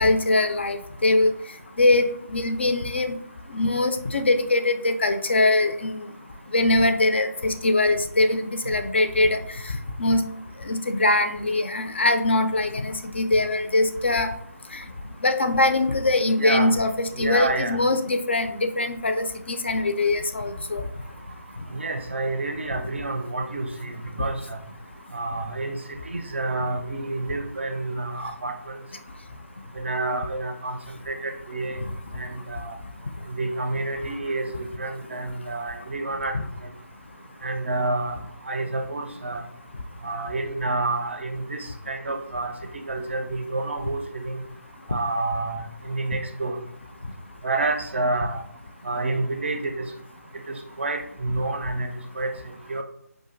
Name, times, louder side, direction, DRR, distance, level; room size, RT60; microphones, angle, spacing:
voice 1, 0.0-1.3 1.8-3.2 3.5-6.0 6.5-9.4 10.0-10.2 10.7-14.3 15.2-20.8, left 2 dB, 45° left, 7 dB, 0.4 m, -22 dB
voice 2, 16.4-16.7 17.2-17.8 21.7-23.9 24.2-24.6 25.1-28.8 29.8-30.8 31.1-31.8 32.2-32.7 33.3-36.3 37.4-38.2 38.5-39.4 40.0-42.5 42.9-44.4 44.9-46.6 47.4-48.4 48.8-49.9 50.5-51.9 52.2-52.3 52.7-52.8, right 2 dB, 45° right, 6 dB, 0.4 m, -29 dB
4.7 x 2.5 x 2.5 m, 0.73 s
figure-of-eight pair, 155°, 9 cm